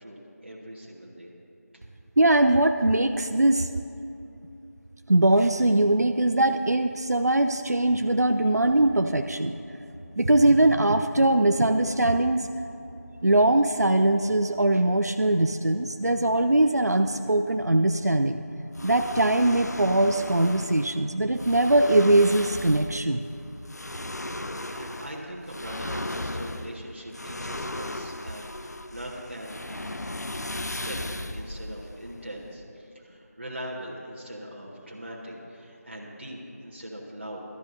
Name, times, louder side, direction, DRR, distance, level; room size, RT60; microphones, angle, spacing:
voice 1, 0.0-1.3 24.7-30.0 30.6-37.4, equal, 40° right, -3 dB, 1.6 m, -41 dB
voice 2, 2.2-3.7 5.1-9.6 10.2-12.5 13.2-18.4 18.8-23.2, right 1 dB, 75° right, 7 dB, 0.5 m, -21 dB
sound 1, 7.8-24.7, equal, 20° right, 0.5 m, -47 dB
sound 2, 18.7-32.6, left 1 dB, 80° left, 0.5 m, -36 dB
19.5 x 12.5 x 2.7 m, 2.8 s
figure-of-eight pair, 175°, 9 cm